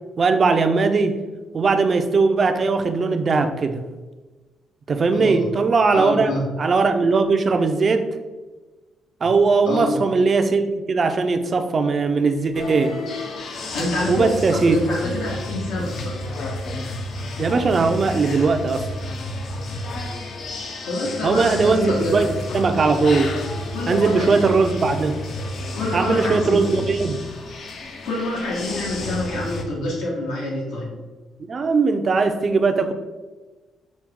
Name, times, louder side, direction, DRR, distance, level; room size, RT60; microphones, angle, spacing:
voice 1, 0.2-1.2 1.5-3.8 4.9-6.3 6.6-8.1 9.2-13.0 14.1-14.8 17.4-18.9 21.2-23.4 23.9-25.2 25.9-27.2 31.5-32.9, right 4 dB, 45° right, 7 dB, 0.4 m, -19 dB
voice 2, 5.1-5.5 5.9-6.4 9.6-10.0 13.7-16.2 20.9-22.3 23.7-24.3 25.7-26.6 28.0-30.9, left 2 dB, 90° left, -3 dB, 1.4 m, -27 dB
sound 1, 12.5-29.6, left 1 dB, 60° left, 0.6 m, -31 dB
6.0 x 2.3 x 3.5 m, 1.2 s
cardioid pair, 90°, 0 cm